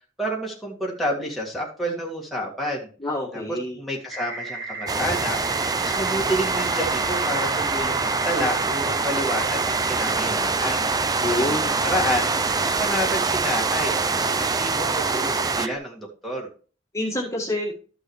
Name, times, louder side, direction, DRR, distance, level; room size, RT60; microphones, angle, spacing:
voice 1, 0.2-2.9 3.3-5.4 5.8-10.9 11.4-12.3 12.6-16.5, equal, ahead, -4 dB, 2.0 m, -29 dB
voice 2, 3.0-3.8 11.2-11.7 16.9-17.7, left 1 dB, 15° left, -2 dB, 1.8 m, -27 dB
sound 1, 4.1-15.8, right 3 dB, 60° right, 1.4 m, -35 dB
sound 2, 4.9-15.7, right 4 dB, 20° right, 0.5 m, -24 dB
13.0 x 6.2 x 3.2 m, 0.38 s
head